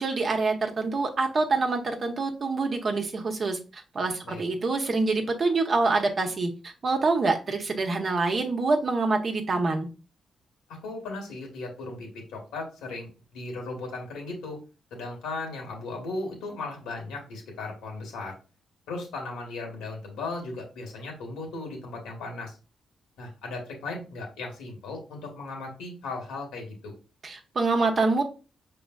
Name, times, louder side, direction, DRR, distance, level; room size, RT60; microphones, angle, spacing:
voice 1, 0.0-9.9 27.2-28.2, right 3 dB, 50° right, 4 dB, 0.9 m, -26 dB
voice 2, 10.7-14.6 14.9-18.4 18.9-22.6 23.2-26.9, left 3 dB, 90° left, 1 dB, 1.4 m, -37 dB
5.1 x 3.1 x 2.4 m, 0.33 s
supercardioid pair, 55°, 0 cm